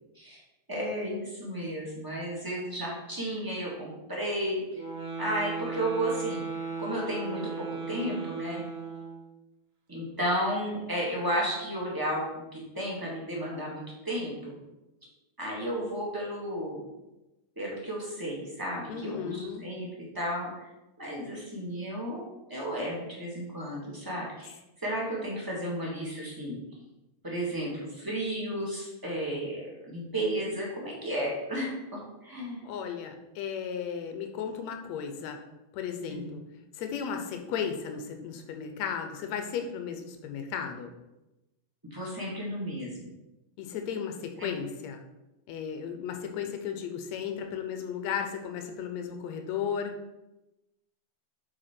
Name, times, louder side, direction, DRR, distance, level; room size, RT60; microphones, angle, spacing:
voice 1, 0.7-4.6 5.2-6.4 6.8-8.6 9.9-12.2 12.5-14.6 15.4-16.8 17.6-19.9 20.1-20.5 21.0-24.5 24.8-26.6 27.2-31.7 32.2-32.6 36.1-36.3 41.9-43.1 44.4-44.5, equal, 10° right, -4 dB, 1.0 m, -33 dB
sound 1, 4.7-9.3, right 5 dB, 85° right, 2.8 m, -36 dB
voice 2, 18.9-19.7 32.6-35.4 35.7-36.4 36.7-40.9 43.6-45.0 45.5-49.9, left 7 dB, 75° left, 5 dB, 1.9 m, -35 dB
7.7 x 4.6 x 4.4 m, 0.99 s
omnidirectional pair, 3.4 m